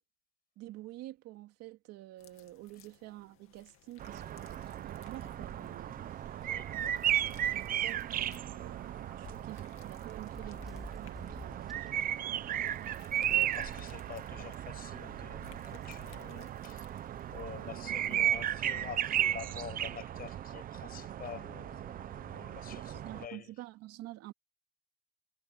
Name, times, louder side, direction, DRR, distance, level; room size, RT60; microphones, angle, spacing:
voice 1, 0.6-6.2 6.7-6.9 7.5-12.4 13.1-13.6 17.8-18.3 18.6-18.9 22.6-24.3, right 16 dB, 55° right, 2.5 m, -49 dB
sound 1, 2.2-18.3, left 13 dB, 45° left, 2.2 m, -62 dB
sound 2, 4.0-23.3, right 11 dB, 30° right, 0.6 m, -35 dB
voice 2, 6.4-6.8 8.3-8.5 10.5-10.6 13.3-16.8 17.3-23.5, left 8 dB, 30° left, 5.7 m, -47 dB
sound 3, 6.4-6.5 6.8-7.0 8.2-9.2 9.7-12.0, equal, ahead, 3.5 m, -51 dB
cardioid pair, 160°, 29 cm